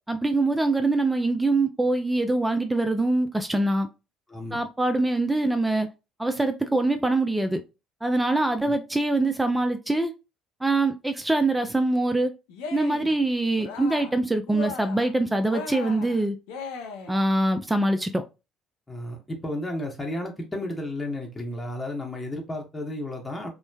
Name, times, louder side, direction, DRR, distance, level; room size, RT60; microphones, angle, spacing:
voice 1, 0.1-3.9 4.5-5.9 6.2-7.6 8.0-10.1 10.6-12.3 12.7-16.4 17.1-18.2, right 2 dB, 10° right, 0.4 m, -24 dB
voice 2, 4.3-4.6 8.6-8.7 18.9-23.5, left 1 dB, 15° left, 0.9 m, -33 dB
Cheering, 12.5-13.2 13.5-14.2 14.5-15.1 15.5-17.3, left 5 dB, 70° left, 0.4 m, -37 dB
3.0 x 2.0 x 2.2 m
hypercardioid pair, 55°, 0 cm